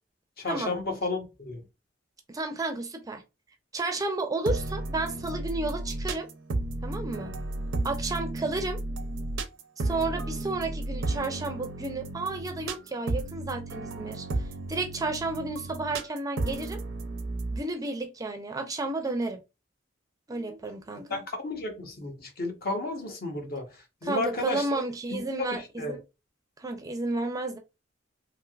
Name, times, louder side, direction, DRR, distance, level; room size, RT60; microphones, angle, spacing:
voice 1, 0.4-1.6 21.1-23.7 24.0-24.7 25.1-26.0, left 2 dB, 55° left, 0.8 m, -32 dB
voice 2, 2.3-3.2 3.7-6.3 6.8-7.3 7.8-8.8 9.8-14.3 14.7-16.8 17.5-19.4 20.3-21.2 24.0-26.0 26.6-27.6, right 2 dB, 20° right, 0.4 m, -32 dB
sound 1, 4.4-17.6, right 2 dB, 75° right, 0.5 m, -33 dB
3.2 x 2.7 x 2.3 m
head